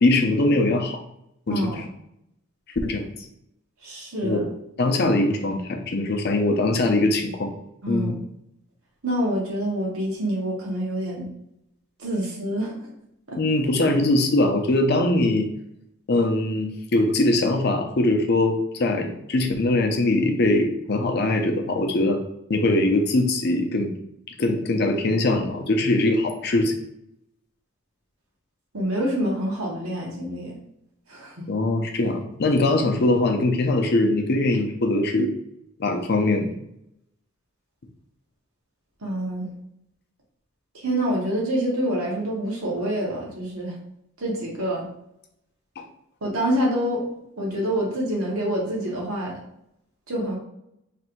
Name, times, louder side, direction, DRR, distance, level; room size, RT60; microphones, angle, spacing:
voice 1, 0.0-1.0 1.5-1.8 2.8-3.1 4.2-4.5 4.8-7.5 7.9-8.2 13.4-15.5 16.1-22.2 22.5-23.9 24.4-26.7 31.5-35.3 35.8-36.5 45.8-45.9, left 2 dB, 50° left, 4 dB, 0.6 m, -22 dB
voice 2, 1.5-1.8 3.8-4.4 7.8-8.1 9.0-11.3 12.0-12.7 13.3-13.4 28.7-30.6 31.1-31.4 39.0-39.5 40.7-43.8 44.2-44.9 46.2-47.0 47.4-49.4 50.1-50.4, equal, 90° right, -3 dB, 1.3 m, -26 dB
3.3 x 2.6 x 4.4 m, 0.78 s
head